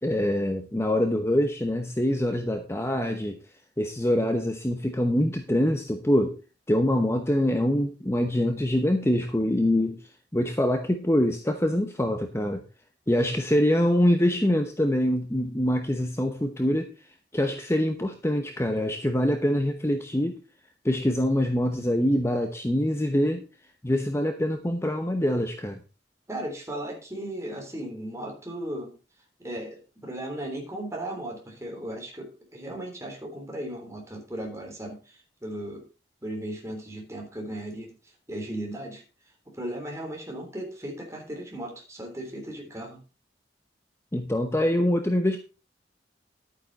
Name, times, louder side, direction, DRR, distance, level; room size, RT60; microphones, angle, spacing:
voice 1, 0.0-3.4 3.8-6.4 6.7-10.0 10.3-12.6 13.1-16.9 17.3-20.4 20.8-23.4 23.8-25.8 44.1-45.4, left 1 dB, 15° left, 6 dB, 0.9 m, -24 dB
voice 2, 26.3-28.9 29.4-35.8 36.2-37.9 38.3-39.0 39.5-43.0, right 1 dB, 15° right, 1 dB, 3.5 m, -36 dB
11.5 x 9.0 x 4.1 m, 0.32 s
head